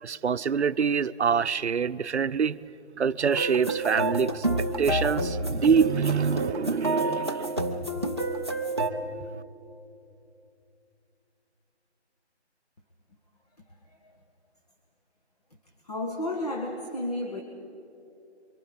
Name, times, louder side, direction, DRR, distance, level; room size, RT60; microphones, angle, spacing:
voice 1, 0.0-2.7 3.0-7.7, right 6 dB, 75° right, 15 dB, 0.6 m, -25 dB
sound 1, 3.3-8.9, right 1 dB, 25° right, 0.6 m, -29 dB
voice 2, 15.9-17.4, left 1 dB, 35° left, 3 dB, 1.4 m, -32 dB
26.0 x 24.0 x 5.1 m, 2.7 s
figure-of-eight pair, 170°, 34 cm